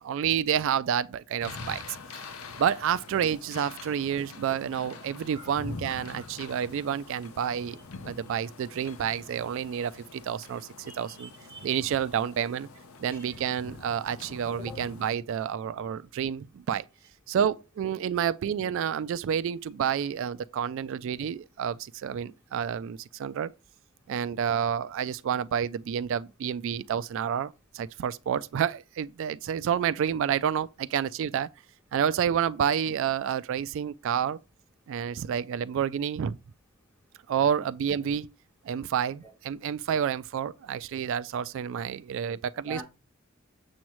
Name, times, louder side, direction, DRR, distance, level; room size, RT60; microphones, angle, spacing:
voice 1, 0.0-1.8 2.1-2.3 2.6-7.8 8.0-11.3 11.6-12.7 13.0-16.8 17.3-23.5 24.1-31.5 31.9-34.4 34.9-36.4 37.3-38.3 38.7-42.8, right 8 dB, 65° right, 0.3 m, -29 dB
sound 1, 1.4-15.2, left 3 dB, 85° left, 0.8 m, -45 dB
voice 2, 10.9-11.7 13.1-13.4 14.6-14.8 37.4-37.5 42.7-42.8, equal, 10° left, 2.9 m, -44 dB
7.4 x 7.1 x 3.1 m
head